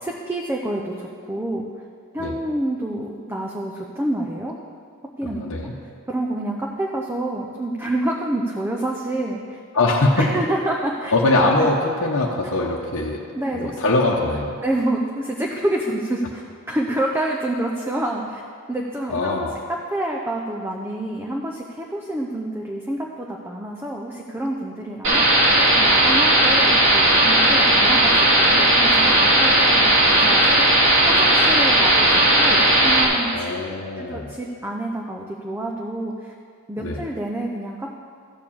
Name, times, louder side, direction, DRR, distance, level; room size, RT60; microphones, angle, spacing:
voice 1, 0.0-1.7 2.1-4.5 5.2-5.4 6.1-9.6 10.2-11.1 11.6-11.7 13.3-13.8 14.6-16.4 16.7-18.4 18.7-19.5 19.9-25.2 25.8-30.8 31.2-33.5 34.0-36.3 36.7-38.0, right 1 dB, 10° right, -1 dB, 0.7 m, -27 dB
voice 2, 5.3-5.7 9.7-10.2 11.1-13.2 13.5-14.6 19.1-19.6 29.2-29.3 33.3-34.3 36.8-37.0, left 2 dB, 60° left, -3 dB, 1.0 m, -22 dB
sound 1, 25.0-33.0, right 1 dB, 60° right, 2.5 m, -16 dB
14.5 x 4.9 x 7.2 m, 2.2 s
head